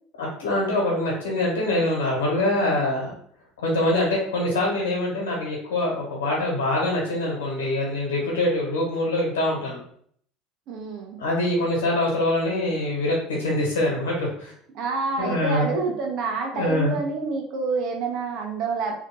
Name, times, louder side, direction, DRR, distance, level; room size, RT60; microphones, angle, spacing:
voice 1, 0.2-3.1 3.6-9.8 11.2-14.5 15.2-15.7 16.5-16.9, left 1 dB, 85° left, -2 dB, 1.7 m, -24 dB
voice 2, 10.7-11.2 14.7-18.9, right 4 dB, 60° right, 2 dB, 1.1 m, -28 dB
3.5 x 3.1 x 3.7 m, 0.62 s
hypercardioid pair, 80°, 0 cm